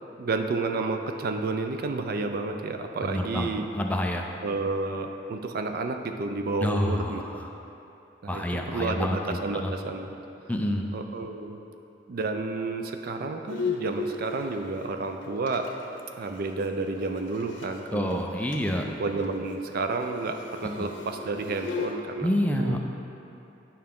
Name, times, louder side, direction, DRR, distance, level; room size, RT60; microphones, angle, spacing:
voice 1, 0.2-3.7 4.4-7.2 8.2-10.1 10.9-11.6 12.1-15.7 16.1-18.2 18.9-22.3 22.6-22.8, right 3 dB, 55° right, 6 dB, 0.4 m, -31 dB
voice 2, 3.0-4.2 6.6-7.5 8.3-9.2 9.5-9.7 10.5-10.9 17.9-18.9 22.2-22.8, left 1 dB, 10° left, 1 dB, 0.4 m, -28 dB
Bowed string instrument, 13.5-17.8 18.1-18.2 18.5-18.8 19.1-21.9, left 4 dB, 80° left, 0.9 m, -36 dB
9.5 x 5.6 x 3.7 m, 2.8 s
head